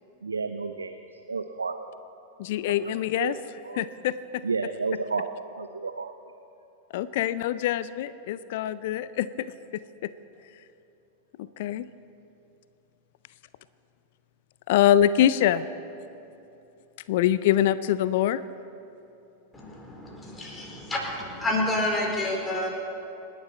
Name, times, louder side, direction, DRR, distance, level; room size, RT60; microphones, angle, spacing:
voice 1, 0.2-1.0 1.3-1.9 3.2-3.3 3.6-3.9 4.4-6.1, right 4 dB, 75° right, 8 dB, 0.6 m, -31 dB
voice 2, 2.4-3.4 3.7-4.4 6.9-9.5 10.0-10.1 11.4-11.9 14.7-15.7 17.1-18.4, left 11 dB, 50° left, 16 dB, 0.4 m, -24 dB
voice 3, 19.5-22.7, left 1 dB, 15° left, -1 dB, 4.1 m, -29 dB
27.5 x 10.5 x 4.3 m, 2.9 s
figure-of-eight pair, 90°, 0 cm